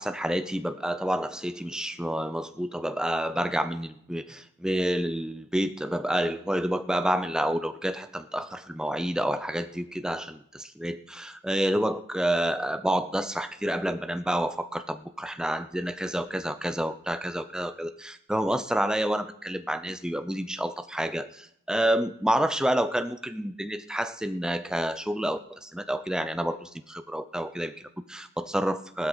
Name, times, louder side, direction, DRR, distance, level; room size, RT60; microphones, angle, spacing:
voice 1, 0.0-29.1, right 1 dB, 5° right, 10 dB, 0.5 m, -29 dB
16.0 x 12.5 x 4.0 m, 0.74 s
head